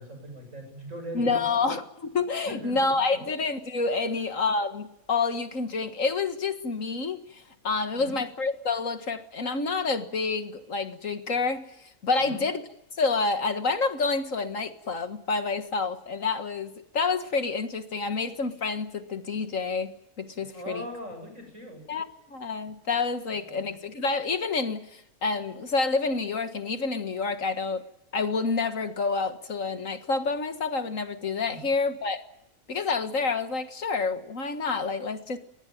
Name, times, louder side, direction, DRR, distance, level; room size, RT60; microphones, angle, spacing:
voice 1, 0.0-1.7 2.5-3.2 4.0-4.1 7.9-8.2 12.2-12.5 20.5-21.9 23.5-23.7 31.5-31.7, equal, 60° right, 5 dB, 8.4 m, -40 dB
voice 2, 1.1-11.6 12.0-12.6 13.0-20.8 21.9-27.8 28.1-32.2 32.7-35.4, left 4 dB, 65° left, 8 dB, 2.0 m, -28 dB
22.5 x 20.5 x 9.3 m, 0.84 s
omnidirectional pair, 1.5 m